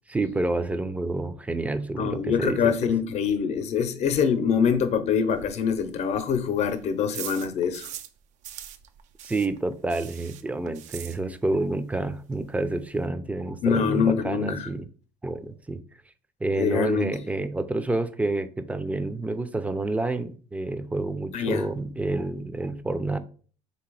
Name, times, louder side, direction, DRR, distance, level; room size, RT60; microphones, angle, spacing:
voice 1, 0.1-2.7 9.2-14.8 15.2-15.8 16.4-23.2, right 2 dB, 10° right, 0.5 m, -28 dB
voice 2, 2.0-7.9 13.6-14.7 16.6-17.2 21.3-21.6, left 7 dB, 55° left, 0.8 m, -24 dB
sound 1, 5.3-8.2 8.4-11.6 11.9-12.0 12.3-12.4 12.6-13.1, right 10 dB, 65° right, 0.5 m, -42 dB
3.3 x 2.9 x 4.7 m
supercardioid pair, 85°, 13 cm